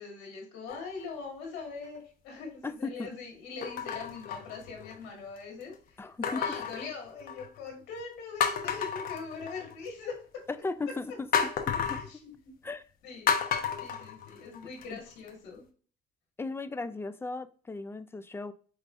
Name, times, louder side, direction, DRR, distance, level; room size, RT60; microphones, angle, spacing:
voice 1, 0.0-10.1 11.8-12.2 13.0-13.3 13.8-15.6, left 4 dB, 90° left, 1.6 m, -42 dB
sound 1, 0.7-1.2 1.9-2.0 3.6-5.1 6.2-7.6 8.0-8.1 8.4-9.9 11.3-12.1 13.3-14.8 15.3-15.4, left 7 dB, 60° left, 0.8 m, -32 dB
voice 2, 2.6-3.2 6.0-6.6 10.5-11.3 11.9-12.0 12.6-12.8 14.9-15.0 16.4-18.5, left 3 dB, 15° left, 0.4 m, -36 dB
5.2 x 3.2 x 2.5 m
cardioid pair, 110°, 17 cm